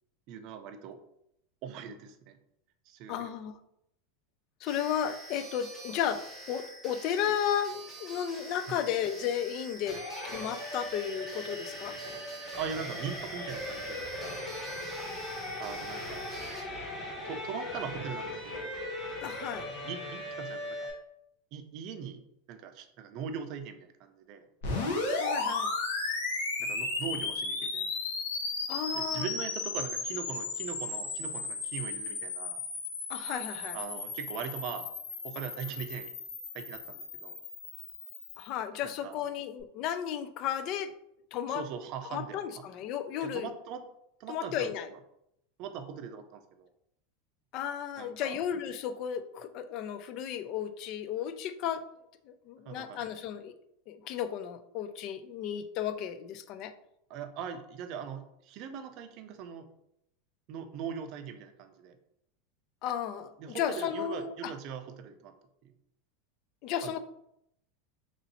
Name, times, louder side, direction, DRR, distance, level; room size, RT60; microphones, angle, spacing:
voice 1, 0.3-1.0 1.6-2.4 2.9-3.3 8.7-8.8 12.6-14.4 15.3-16.3 17.2-18.7 19.6-20.9 21.5-22.2 22.5-24.5 26.6-27.9 28.9-32.6 33.7-34.9 35.2-36.1 36.5-37.4 38.8-39.2 41.5-42.4 43.2-43.9 44.2-45.0 45.6-46.7 48.0-48.4 52.7-53.0 57.1-59.7 60.5-62.0 63.4-65.3 65.6-65.7 66.8-67.0, right 7 dB, 45° right, 8 dB, 0.5 m, -41 dB
voice 2, 3.1-3.5 4.6-10.0 10.2-12.0 19.2-19.7 25.0-25.7 28.7-29.3 33.1-33.8 38.4-40.9 41.3-41.6 42.0-43.5 44.3-44.9 47.5-51.8 52.3-53.5 53.9-56.7 62.8-64.5 66.6-67.0, left 9 dB, 45° left, 11 dB, 0.3 m, -34 dB
sound 1, 4.7-16.6, right 2 dB, 5° right, 1.0 m, -47 dB
sound 2, 9.8-20.9, left 1 dB, 25° left, 1.3 m, -39 dB
sound 3, 24.6-38.5, left 3 dB, 85° left, 1.0 m, -35 dB
3.0 x 2.7 x 4.1 m, 0.77 s
supercardioid pair, 150°, 0 cm